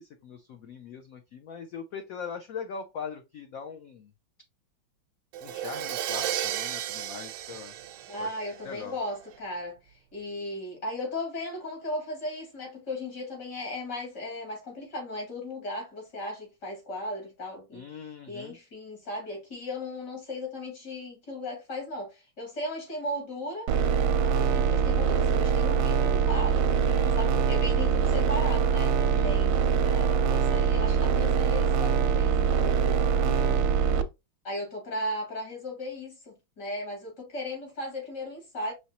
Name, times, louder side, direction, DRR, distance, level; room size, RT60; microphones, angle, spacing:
voice 1, 0.0-4.1 5.4-7.7 8.2-8.3 8.6-9.0 17.7-18.6 26.8-27.4 29.1-29.4 33.2-33.8, left 6 dB, 75° left, 0.7 m, -41 dB
Crash cymbal, 5.3-9.1, right 11 dB, 85° right, 1.4 m, -34 dB
voice 2, 8.1-17.8 18.3-23.7 24.2-26.7 27.1-33.6 34.4-38.7, left 1 dB, 55° left, 3.2 m, -36 dB
sound 1, 23.7-34.0, right 6 dB, 70° right, 0.9 m, -24 dB
5.6 x 3.1 x 2.9 m
omnidirectional pair, 2.2 m